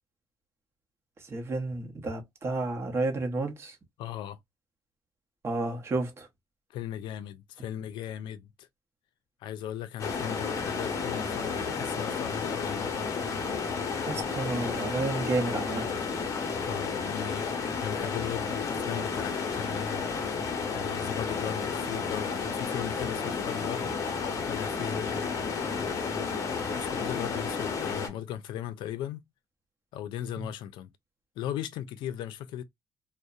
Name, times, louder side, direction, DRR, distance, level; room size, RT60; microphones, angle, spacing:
voice 1, 1.3-3.8 5.4-6.3 14.0-15.9 30.4-30.5, right 2 dB, 35° right, 0.7 m, -31 dB
voice 2, 4.0-4.4 6.7-8.7 9.4-13.0 16.7-17.5 17.8-20.1 20.7-23.9 24.4-26.3 26.8-29.2 29.9-30.9 31.4-32.6, left 11 dB, 90° left, 0.4 m, -37 dB
sound 1, 10.0-28.1, left 5 dB, 45° left, 0.7 m, -32 dB
2.6 x 2.1 x 2.3 m
cardioid pair, 135°, 8 cm